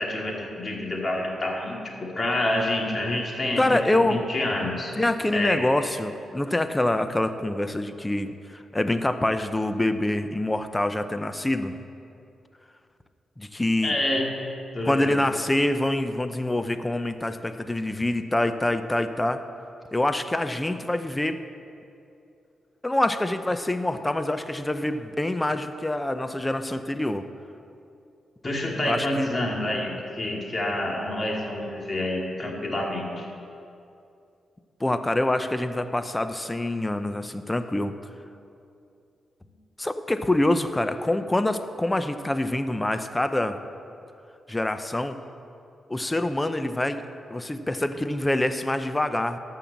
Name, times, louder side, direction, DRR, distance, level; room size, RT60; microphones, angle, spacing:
voice 1, 0.0-4.9 5.3-5.7 13.8-14.3 14.7-15.2 28.4-33.2, left 1 dB, 35° left, -1 dB, 2.6 m, -28 dB
voice 2, 3.6-4.2 4.9-11.8 13.4-13.9 14.8-19.4 19.9-21.4 22.8-27.3 28.8-29.3 34.8-37.9 39.8-43.6 44.5-45.2 45.9-49.4, left 1 dB, 15° left, 10 dB, 0.7 m, -25 dB
14.0 x 5.7 x 7.5 m, 2.6 s
cardioid pair, 70°, 0 cm